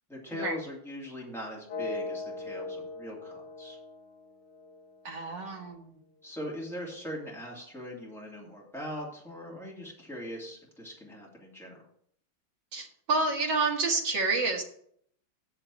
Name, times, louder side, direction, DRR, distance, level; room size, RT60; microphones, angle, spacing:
voice 1, 0.1-3.8 6.2-11.8, left 1 dB, ahead, -4 dB, 2.6 m, -41 dB
sound 1, 1.7-5.6, left 3 dB, 60° left, 1.9 m, -40 dB
voice 2, 5.0-6.0 12.7-14.6, right 3 dB, 65° right, 1 dB, 2.2 m, -29 dB
7.0 x 5.7 x 7.3 m, 0.66 s
omnidirectional pair, 2.1 m